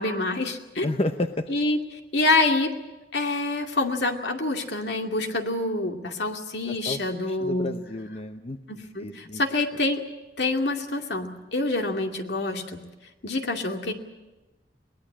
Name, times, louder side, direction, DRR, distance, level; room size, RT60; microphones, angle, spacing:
voice 1, 0.0-0.9 1.5-2.7 3.1-7.7 8.7-10.0 10.4-12.8 13.2-13.9, left 2 dB, 65° left, 4 dB, 2.4 m, -26 dB
voice 2, 0.8-1.4 6.7-7.0 7.3-8.6 9.0-9.4, left 1 dB, 35° left, 8 dB, 0.8 m, -30 dB
23.0 x 19.0 x 8.7 m, 1.1 s
head